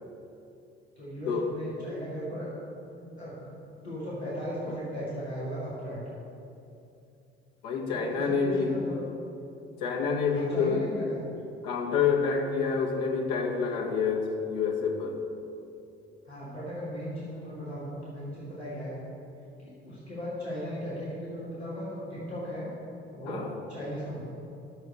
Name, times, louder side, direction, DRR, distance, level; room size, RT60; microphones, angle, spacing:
voice 1, 1.0-2.5 3.0-3.6 3.8-6.0 7.9-9.0 10.3-11.3 16.3-19.0 19.6-22.7 23.1-24.3, equal, 90° left, -9 dB, 2.1 m, -37 dB
voice 2, 7.6-8.7 9.8-10.8 11.6-15.1 23.3-23.5, left 5 dB, 65° left, 0 dB, 1.4 m, -27 dB
8.6 x 6.6 x 7.8 m, 2.7 s
figure-of-eight pair, 50°, 31 cm